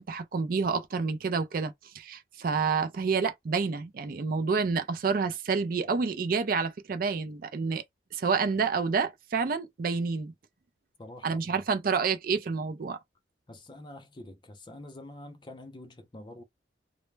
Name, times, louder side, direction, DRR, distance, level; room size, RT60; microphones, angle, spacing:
voice 1, 0.0-7.8 8.1-10.3 11.2-13.0, right 5 dB, 50° right, 0.4 m, -29 dB
voice 2, 11.0-11.6 13.5-16.4, left 1 dB, 25° left, 0.5 m, -46 dB
2.1 x 2.0 x 3.1 m
head